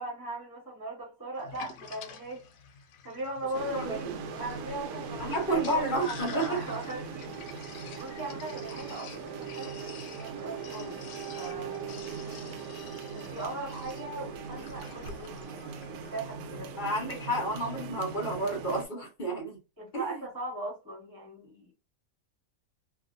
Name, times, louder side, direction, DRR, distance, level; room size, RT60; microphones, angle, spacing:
voice 1, 0.0-2.4 3.0-7.3 8.0-11.0 11.4-12.0 13.1-16.8 19.8-21.7, right 2 dB, 15° right, 1.1 m, -39 dB
Sink (filling or washing), 1.4-16.4, left 6 dB, 75° left, 1.2 m, -49 dB
sound 1, 3.5-18.9, right 6 dB, 80° right, 1.2 m, -40 dB
voice 2, 5.2-6.6 16.8-19.6 19.9-20.2, right 1 dB, 30° left, 1.2 m, -30 dB
3.1 x 2.5 x 2.5 m
omnidirectional pair, 1.8 m